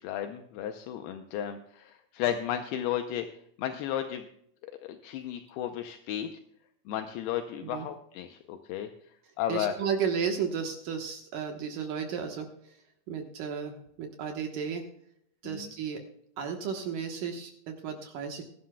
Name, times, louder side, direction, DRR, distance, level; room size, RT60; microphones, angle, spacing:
voice 1, 0.0-3.3 3.6-4.3 4.6-6.3 6.9-8.9 9.4-9.7 15.4-15.7, left 10 dB, 80° left, 7 dB, 2.4 m, -34 dB
voice 2, 9.5-12.7 13.1-14.8 15.4-16.0 16.4-18.4, right 6 dB, 65° right, 3 dB, 2.3 m, -33 dB
21.5 x 11.5 x 2.3 m, 0.71 s
omnidirectional pair, 5.2 m